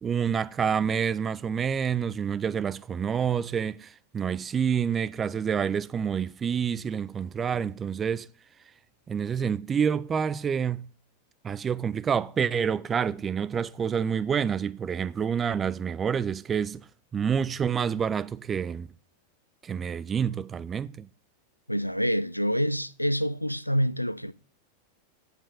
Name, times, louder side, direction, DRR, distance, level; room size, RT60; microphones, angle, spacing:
voice 1, 0.0-8.3 9.1-10.9 11.4-16.9 17.1-18.9 19.6-21.1, right 7 dB, 20° right, 0.3 m, -28 dB
voice 2, 21.7-24.3, equal, 90° left, 0.3 m, -27 dB
8.7 x 5.4 x 5.0 m
figure-of-eight pair, 90°, 0 cm